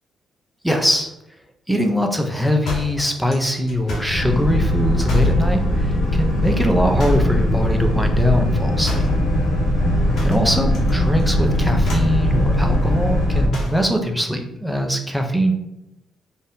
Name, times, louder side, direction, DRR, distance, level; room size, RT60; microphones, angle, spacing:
voice 1, 0.6-1.1 1.7-9.1 10.2-15.6, equal, ahead, 3 dB, 0.5 m, -22 dB
sound 1, 2.6-4.2 5.0-5.4 7.0-7.4 8.8-9.2 10.1-10.9 11.2-11.5 11.8-12.2 13.5-13.9, right 1 dB, 55° left, 1.1 m, -30 dB
Boat Water vehicle, 4.1-13.5, equal, 75° left, 1.2 m, -19 dB
4.1 x 2.6 x 3.5 m, 0.89 s
cardioid pair, 145°, 0 cm